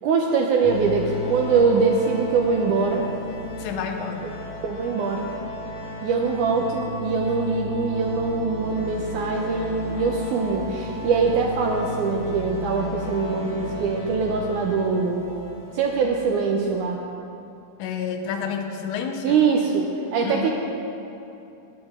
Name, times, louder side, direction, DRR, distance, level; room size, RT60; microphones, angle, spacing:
voice 1, 0.0-3.1 4.2-4.3 4.6-5.3 6.0-15.3 15.7-17.0 19.2-20.5, right 5 dB, 75° right, 0 dB, 2.0 m, -23 dB
sound 1, 0.6-16.5, left 2 dB, 30° left, 1.2 m, -34 dB
voice 2, 3.6-4.2 17.8-19.4 20.2-20.5, left 6 dB, 75° left, 5 dB, 2.1 m, -29 dB
18.0 x 8.4 x 3.6 m, 2.7 s
omnidirectional pair, 3.9 m